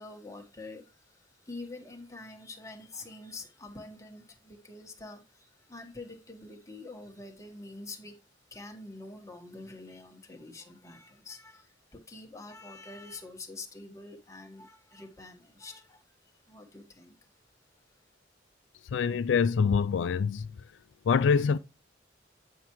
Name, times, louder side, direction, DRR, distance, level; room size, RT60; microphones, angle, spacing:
voice 1, 0.0-8.2 8.5-16.0 16.5-17.2, left 2 dB, 15° left, 1.4 m, -46 dB
voice 2, 18.9-20.5 21.1-21.6, left 6 dB, 75° left, 0.4 m, -25 dB
9.2 x 5.7 x 3.1 m
head